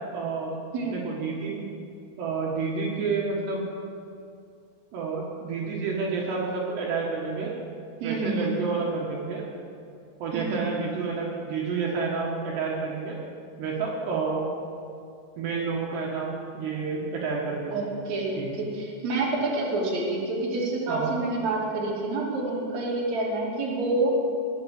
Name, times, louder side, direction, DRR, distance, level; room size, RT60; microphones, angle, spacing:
voice 1, 0.1-0.5 0.9-1.6 2.2-3.7 4.9-7.5 8.0-9.4 10.2-13.2 13.6-14.4 15.4-17.9 18.4-18.6 20.9-21.2, right 4 dB, 70° right, -3 dB, 3.6 m, -29 dB
voice 2, 8.0-8.5 10.3-10.7 17.7-24.1, right 2 dB, 45° right, -4 dB, 3.7 m, -28 dB
20.5 x 8.2 x 7.2 m, 2.5 s
omnidirectional pair, 5.1 m